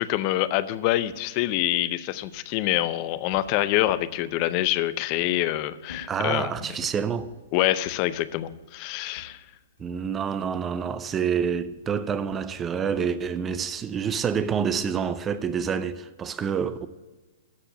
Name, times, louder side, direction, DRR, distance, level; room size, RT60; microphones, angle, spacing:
voice 1, 0.0-6.5 7.5-9.4, left 15 dB, 40° left, 0.6 m, -26 dB
sound 1, 1.1-4.7 5.2-5.4 5.8-6.8 7.2-7.5 7.8-8.1 8.5-8.7 9.1-10.1 10.4-10.7 11.1-11.4 11.7-15.7, left 3 dB, 80° left, 1.7 m, -50 dB
voice 2, 6.1-7.3 9.8-16.9, right 7 dB, 20° right, 0.6 m, -27 dB
13.5 x 4.5 x 8.6 m
figure-of-eight pair, 110°, 0 cm